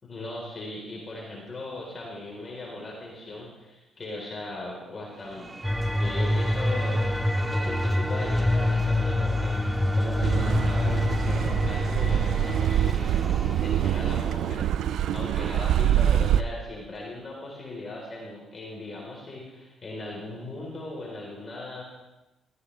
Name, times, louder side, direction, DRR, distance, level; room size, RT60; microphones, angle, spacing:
voice 1, 0.0-5.5 6.0-21.8, left 2 dB, 40° left, -2 dB, 3.7 m, -38 dB
sound 1, 5.1-15.0, right 2 dB, 20° right, 1.0 m, -41 dB
sound 2, 5.6-13.0, left 1 dB, ahead, 0.5 m, -26 dB
Car passing by / Accelerating revving vroom, 10.2-16.4, right 11 dB, 75° right, 0.4 m, -25 dB
15.0 x 14.5 x 3.3 m, 1.0 s
cardioid pair, 80°, 0 cm